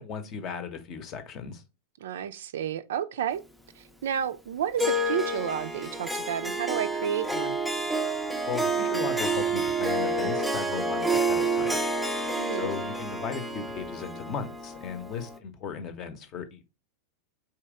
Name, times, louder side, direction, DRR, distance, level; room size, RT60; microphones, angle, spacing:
voice 1, 0.0-1.6 8.4-11.8 12.5-16.7, left 6 dB, 35° left, 0.7 m, -36 dB
voice 2, 2.0-3.4 3.8-7.6 12.3-12.7, right 9 dB, 60° right, 0.3 m, -31 dB
Harp, 4.8-15.4, right 2 dB, ahead, 0.5 m, -29 dB
4.0 x 3.0 x 3.6 m
figure-of-eight pair, 90°, 0 cm